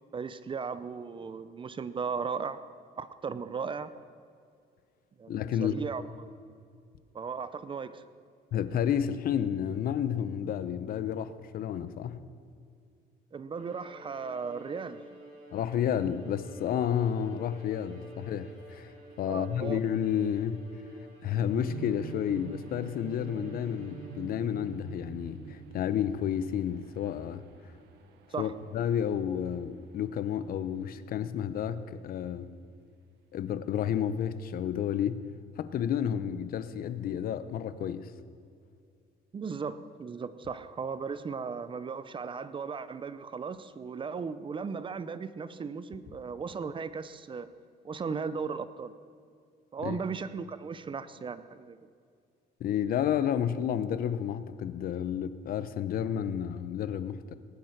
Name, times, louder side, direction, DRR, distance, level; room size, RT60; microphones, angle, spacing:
voice 1, 0.1-2.6 3.0-3.9 5.2-6.3 7.1-8.0 13.3-15.0 19.3-19.8 28.3-28.5 39.3-47.5 47.8-48.9 49.7-51.8, right 5 dB, 30° right, 13 dB, 0.7 m, -36 dB
voice 2, 5.3-5.8 8.5-12.2 15.5-18.9 19.2-20.6 21.2-27.4 28.4-32.5 33.3-35.3 35.6-38.1 49.8-50.0 52.6-57.3, left 9 dB, 60° left, 13 dB, 0.8 m, -31 dB
Bowed string instrument, 13.5-24.6, equal, 50° right, 5.2 m, -51 dB
sound 1, 21.6-30.5, right 8 dB, 85° right, 1.2 m, -47 dB
19.5 x 11.0 x 5.9 m, 2.3 s
cardioid pair, 110°, 17 cm